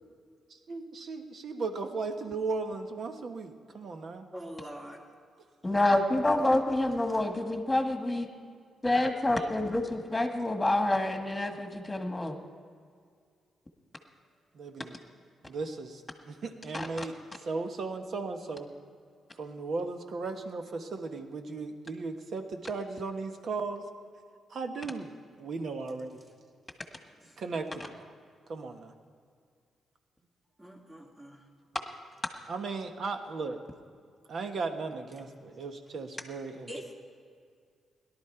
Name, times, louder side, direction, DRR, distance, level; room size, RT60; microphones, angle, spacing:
voice 1, 0.7-4.3 14.5-15.0 15.4-18.7 19.4-23.9 24.5-25.1 25.4-26.1 27.4-28.1 28.5-28.9 32.5-33.6 34.3-36.7, right 4 dB, 60° right, 6 dB, 1.2 m, -36 dB
voice 2, 4.3-5.0 7.4-7.5 27.2-27.3 30.6-31.4 36.7-36.9, equal, 25° right, -1 dB, 2.7 m, -44 dB
voice 3, 5.6-8.3 8.8-12.3 16.7-16.9, left 1 dB, 15° left, 5 dB, 1.6 m, -27 dB
17.5 x 12.0 x 4.5 m, 2.2 s
cardioid pair, 75°, 0 cm